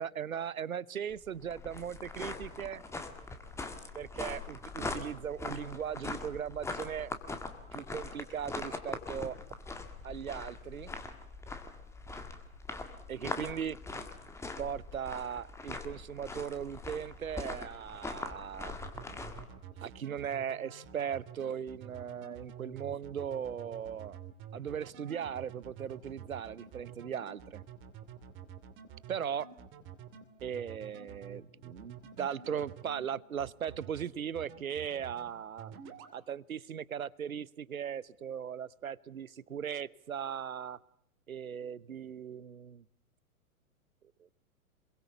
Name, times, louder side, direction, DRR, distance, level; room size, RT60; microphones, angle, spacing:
voice 1, 0.0-2.8 3.9-7.1 7.7-9.4 10.0-10.9 13.1-14.0 14.6-18.8 19.8-24.2 24.5-27.6 29.1-29.5 30.4-35.7 36.1-40.8 41.3-42.8, right 8 dB, 70° right, 22 dB, 0.9 m, -38 dB
sound 1, 1.1-19.4, left 3 dB, 5° left, 1.7 m, -42 dB
sound 2, 18.7-33.0 33.4-34.0 34.4-35.3 35.6-36.1, right 9 dB, 25° right, 2.8 m, -48 dB
27.0 x 22.5 x 7.0 m, 0.73 s
figure-of-eight pair, 110°, 43 cm